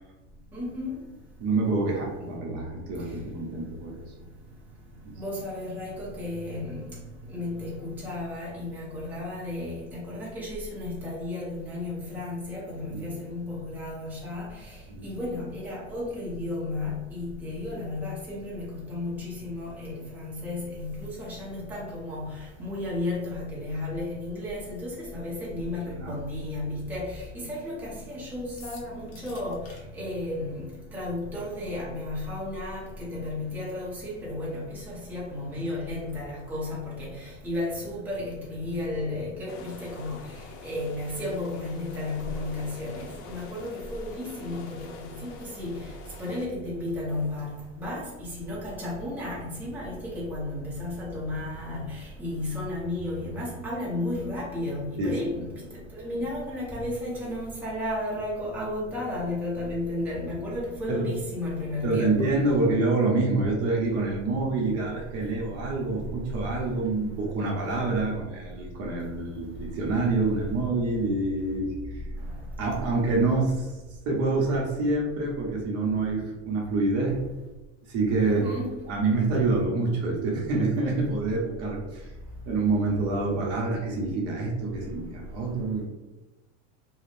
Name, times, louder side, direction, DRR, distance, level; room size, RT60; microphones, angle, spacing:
voice 1, 0.5-1.0 2.2-2.3 3.0-3.1 5.2-7.0 7.2-62.6 63.8-63.9 64.3-64.7 65.7-65.8 66.2-66.3 72.2-72.4 78.2-78.7, left 2 dB, 5° right, -7 dB, 0.7 m, -33 dB
voice 2, 1.4-4.0 5.0-5.1 14.9-15.1 25.9-26.1 55.0-55.1 60.9-61.1 61.8-72.0 72.6-73.7 74.1-77.2 77.9-78.5 78.9-82.1 82.5-85.8, right 3 dB, 40° right, -2 dB, 0.8 m, -27 dB
sound 1, 28.6-29.8, left 4 dB, 40° left, 0.9 m, -47 dB
sound 2, 39.5-46.5, left 5 dB, 60° left, 0.6 m, -46 dB
2.5 x 2.3 x 3.3 m, 1.1 s
supercardioid pair, 135°, 37 cm